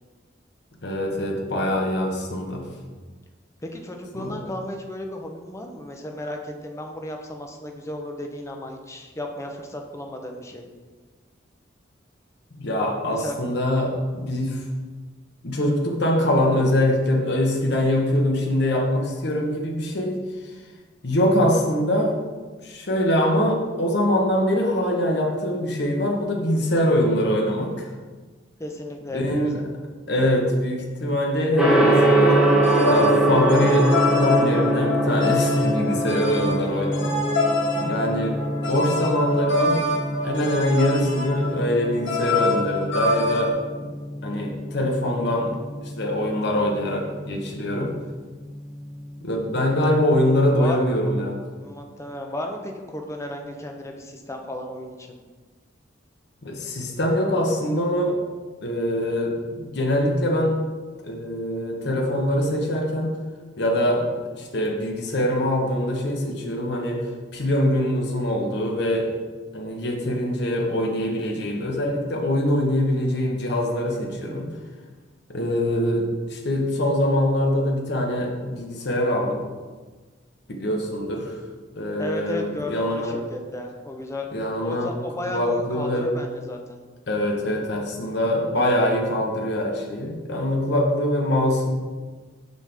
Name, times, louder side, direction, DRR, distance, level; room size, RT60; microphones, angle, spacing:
voice 1, 0.8-2.6 4.1-4.4 12.5-14.6 15.4-20.2 21.0-22.2 22.6-27.9 29.1-29.6 30.1-32.4 32.9-37.2 37.8-39.8 40.2-43.9 44.2-45.5 46.0-47.9 49.2-51.4 56.4-58.2 58.6-60.6 61.0-63.1 63.6-64.1 64.4-67.0 67.3-69.1 69.5-74.5 75.3-79.4 80.5-81.3 81.7-83.2 84.3-84.9 85.3-86.1 87.1-91.7, left 1 dB, 60° left, 1 dB, 1.0 m, -23 dB
voice 2, 3.6-10.7 13.1-13.4 28.6-29.7 30.2-30.3 50.2-50.3 50.6-50.8 51.6-55.2 82.0-84.3 84.6-86.8, left 1 dB, 15° left, 3 dB, 0.6 m, -34 dB
Gong, 31.6-50.5, right 1 dB, 5° right, 1.1 m, -25 dB
sound 1, 32.4-43.5, left 2 dB, 80° left, 1.5 m, -26 dB
6.3 x 5.2 x 3.4 m, 1.4 s
head